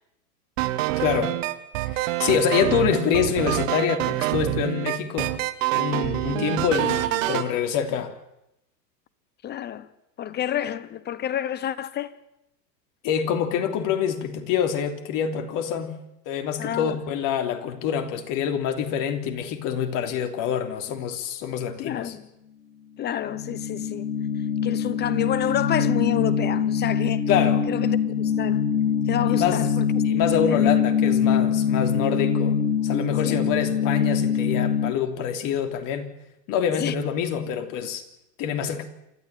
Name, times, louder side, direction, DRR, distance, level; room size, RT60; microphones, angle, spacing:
sound 1, 0.6-7.5, right 17 dB, 50° right, 1.8 m, -26 dB
voice 1, 1.0-1.4 1.9-5.3 5.7-8.1 13.0-16.0 16.2-22.1 27.3-27.6 29.3-29.7 30.0-32.6 32.8-36.1 36.5-38.0 38.4-38.8, left 8 dB, 40° left, 3.3 m, -26 dB
voice 2, 9.4-9.9 10.2-12.1 16.6-17.0 21.8-22.2 23.0-24.1 24.6-27.2 27.7-28.6 29.1-29.9 30.5-31.0 33.2-33.4 36.8-36.9, left 10 dB, 20° left, 0.8 m, -29 dB
sound 2, 23.2-34.9, left 7 dB, 90° left, 2.0 m, -23 dB
28.0 x 13.5 x 9.1 m
hypercardioid pair, 125°, 50 cm